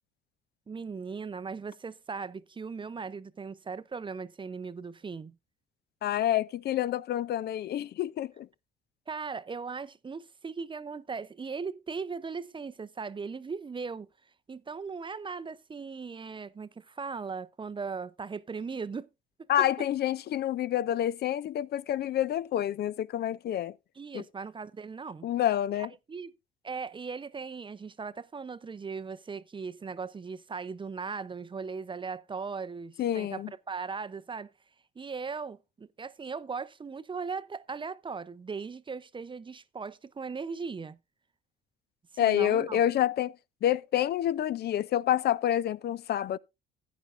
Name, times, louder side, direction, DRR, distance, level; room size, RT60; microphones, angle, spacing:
voice 1, 0.7-5.4 9.1-14.1 14.5-19.1 19.6-19.7 24.0-25.3 26.1-26.3 26.6-34.5 35.0-41.0 42.2-42.8, right 5 dB, 25° right, 0.6 m, -38 dB
voice 2, 6.0-8.5 19.5-23.7 24.1-24.2 25.2-25.9 33.0-33.5 42.2-46.4, left 11 dB, 50° left, 0.4 m, -28 dB
14.5 x 9.2 x 2.5 m
supercardioid pair, 70°, 21 cm